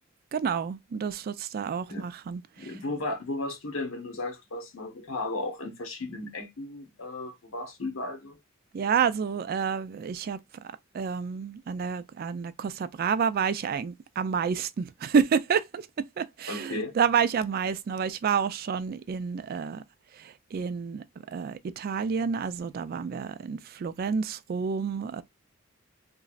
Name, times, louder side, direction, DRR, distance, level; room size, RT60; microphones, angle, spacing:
voice 1, 0.3-2.8 8.7-10.4 10.9-15.9 16.2-19.8 20.2-25.2, right 6 dB, 45° right, 0.3 m, -29 dB
voice 2, 2.6-8.4 16.5-17.0, left 2 dB, 75° left, 1.0 m, -35 dB
3.0 x 2.6 x 2.3 m
head